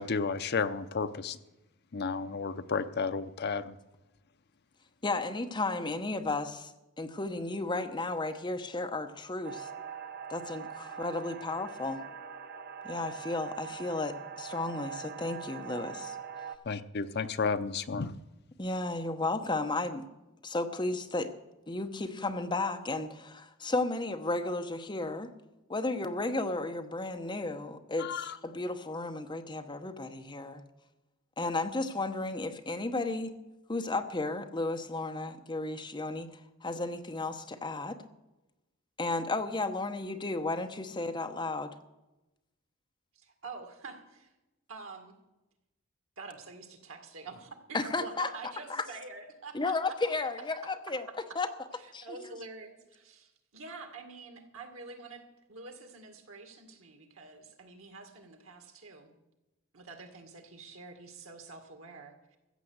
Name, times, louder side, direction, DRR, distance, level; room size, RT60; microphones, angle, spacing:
voice 1, 0.0-1.4 1.9-3.8 16.7-18.1 28.0-28.4, left 5 dB, 50° left, 11 dB, 0.6 m, -32 dB
voice 2, 5.0-6.7 7.0-9.7 10.3-12.0 12.8-16.2 18.6-20.1 20.4-21.3 21.7-25.3 25.7-30.6 31.4-33.3 33.7-38.0 39.0-41.8 47.7-48.3 48.7-48.9 49.5-51.1 51.3-51.5 51.9-52.3, left 2 dB, 20° left, 7 dB, 0.9 m, -33 dB
sound 1, 9.4-16.6, right 7 dB, 50° right, 0.9 m, -42 dB
voice 3, 43.1-44.3 44.7-45.1 46.2-50.0 51.7-55.2 55.5-59.1 59.7-62.4, right 4 dB, 80° right, 5 dB, 2.1 m, -47 dB
14.5 x 7.7 x 7.9 m, 1.0 s
head